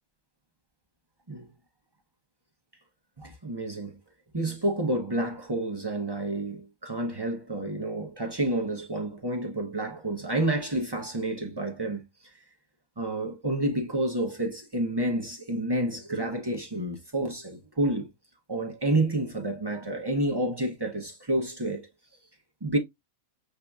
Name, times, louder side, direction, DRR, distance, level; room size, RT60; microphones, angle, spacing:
voice 1, 3.2-4.0 4.3-12.1 13.0-18.1 18.5-21.9 22.6-22.8, right 1 dB, 30° right, 0.5 m, -29 dB
6.5 x 2.6 x 2.3 m
omnidirectional pair, 1.5 m